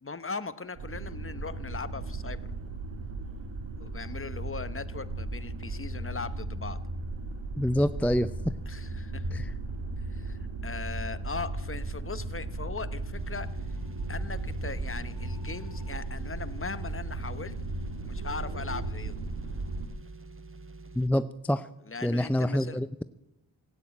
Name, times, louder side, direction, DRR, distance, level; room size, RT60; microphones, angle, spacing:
voice 1, 0.0-2.5 3.8-6.9 8.7-9.5 10.1-13.7 14.1-17.6 18.0-19.1 21.8-22.8, left 4 dB, 30° left, 14 dB, 0.9 m, -39 dB
sound 1, 0.7-19.9, right 2 dB, 85° right, 1.8 m, -36 dB
voice 2, 7.6-8.3 9.3-9.4 20.9-21.7 22.0-23.0, equal, 5° left, 13 dB, 0.4 m, -26 dB
sound 2, 13.1-21.2, right 2 dB, 30° right, 1.2 m, -47 dB
18.0 x 9.2 x 8.7 m, 0.97 s
cardioid pair, 55°, 45 cm